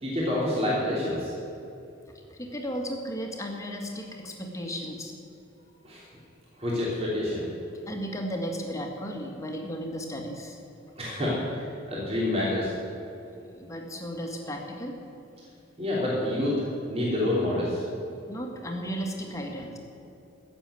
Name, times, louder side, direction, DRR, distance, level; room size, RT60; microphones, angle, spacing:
voice 1, 0.0-1.3 5.8-6.0 6.6-7.4 11.0-12.7 15.8-16.6 16.9-17.8, left 1 dB, 35° right, -6 dB, 3.0 m, -27 dB
voice 2, 2.3-5.1 7.9-10.9 13.5-15.0 18.2-19.8, equal, 15° left, 1 dB, 1.8 m, -35 dB
15.5 x 7.1 x 9.1 m, 2.7 s
head